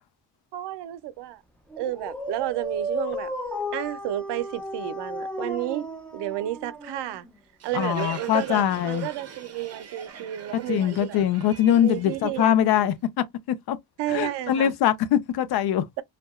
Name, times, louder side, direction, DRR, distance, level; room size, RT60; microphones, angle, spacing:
voice 1, 0.5-1.4 1.8-3.3 3.7-5.9 6.1-7.3 7.6-11.2 11.8-12.9 14.0-14.7, right 14 dB, 85° right, 0.5 m, -31 dB
Dog, 1.7-7.4, equal, 5° left, 0.4 m, -34 dB
Crowd, 7.6-13.0, right 7 dB, 40° right, 0.6 m, -42 dB
voice 2, 7.7-9.1 10.7-12.9 13.5-13.8 14.1-15.8, left 10 dB, 70° left, 0.5 m, -22 dB
2.7 x 2.2 x 2.3 m
cardioid pair, 135°, 40 cm